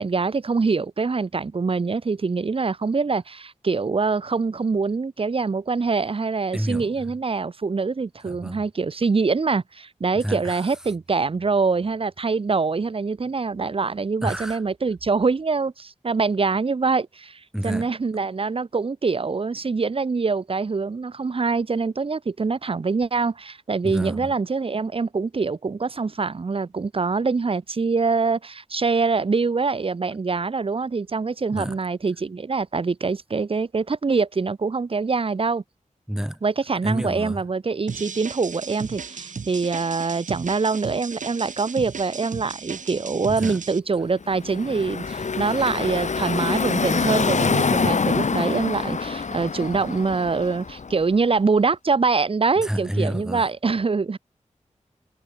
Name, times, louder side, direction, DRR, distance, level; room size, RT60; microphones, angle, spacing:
voice 1, 0.0-35.6 36.4-54.2, right 4 dB, 45° right, 0.7 m, -24 dB
voice 2, 6.5-6.9 8.2-8.6 10.2-10.6 14.2-14.6 17.5-17.9 23.8-24.3 31.5-31.8 36.1-36.4 36.8-37.4 43.3-43.6 52.6-53.5, equal, 5° right, 1.6 m, -29 dB
sound 1, 37.9-43.8, right 5 dB, 75° right, 1.2 m, -36 dB
Car passing by / Traffic noise roadway noise, 44.2-51.1, left 5 dB, 65° left, 1.4 m, -25 dB
wide cardioid pair, 100°, 13 cm